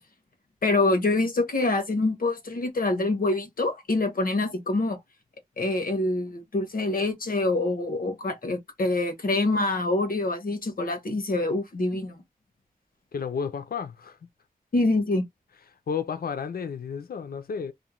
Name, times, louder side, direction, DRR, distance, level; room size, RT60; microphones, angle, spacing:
voice 1, 0.6-5.0 5.6-12.2 14.7-15.2, left 2 dB, 70° left, 0.9 m, -25 dB
voice 2, 13.1-14.2 15.9-17.7, left 6 dB, 85° left, 0.4 m, -32 dB
2.5 x 2.1 x 2.9 m
wide cardioid pair, 100°, 15 cm